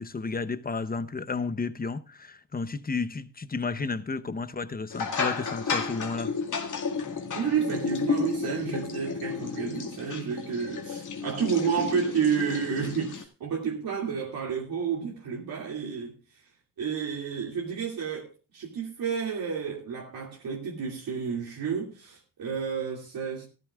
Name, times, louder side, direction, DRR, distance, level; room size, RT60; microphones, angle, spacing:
voice 1, 0.0-6.3, left 4 dB, 25° left, 0.8 m, -32 dB
sound 1, 4.9-13.2, left 5 dB, 55° left, 2.1 m, -32 dB
voice 2, 7.3-16.5 16.8-23.5, right 7 dB, 80° right, 2.7 m, -31 dB
15.5 x 13.5 x 2.4 m
cardioid pair, 90°, 36 cm